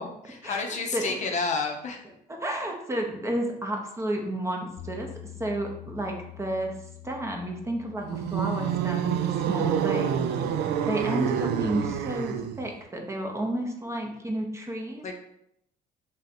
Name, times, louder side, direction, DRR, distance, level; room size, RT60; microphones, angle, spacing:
voice 1, 0.0-2.0 15.0-15.1, left 4 dB, 45° left, 3 dB, 0.6 m, -30 dB
voice 2, 0.9-1.3 2.3-5.1 5.4-6.8 7.0-10.4 10.8-15.1, right 1 dB, 15° right, 2 dB, 0.7 m, -31 dB
Bass guitar, 4.8-11.0, left 12 dB, 85° left, 0.5 m, -47 dB
sound 1, 8.0-12.7, right 8 dB, 75° right, 0.4 m, -27 dB
3.4 x 2.6 x 4.1 m, 0.77 s
cardioid pair, 110°, 17 cm